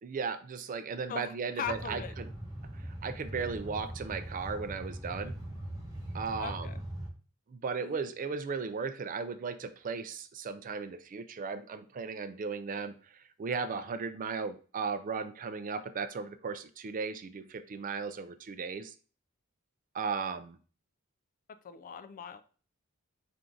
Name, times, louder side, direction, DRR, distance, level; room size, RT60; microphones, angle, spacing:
voice 1, 0.0-2.3 2.7-5.4 6.1-6.7 7.5-18.9 19.9-20.6, right 5 dB, 40° right, 11 dB, 0.4 m, -36 dB
voice 2, 1.1-2.1 3.4-3.5 6.4-6.8 7.8-8.0 21.6-22.4, left 7 dB, 40° left, 10 dB, 0.4 m, -40 dB
sound 1, 1.6-7.1, right 1 dB, 15° right, 1.1 m, -41 dB
4.5 x 2.5 x 3.7 m, 0.38 s
head